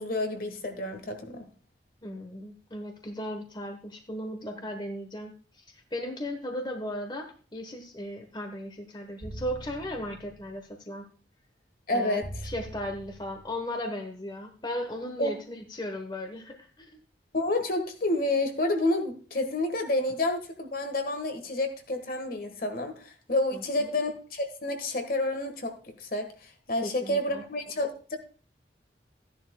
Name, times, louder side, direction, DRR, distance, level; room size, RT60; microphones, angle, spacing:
voice 1, 0.0-1.4 11.9-12.3 15.2-15.3 17.3-23.0 23.3-26.3 26.7-28.2, left 2 dB, 55° left, 6 dB, 1.5 m, -29 dB
voice 2, 2.0-11.0 11.9-17.0 23.5-23.9 26.8-27.4, left 1 dB, 25° left, 4 dB, 1.2 m, -36 dB
sound 1, 9.2-10.6 12.2-13.6, right 1 dB, 25° right, 1.2 m, -43 dB
14.0 x 10.5 x 2.3 m, 0.40 s
head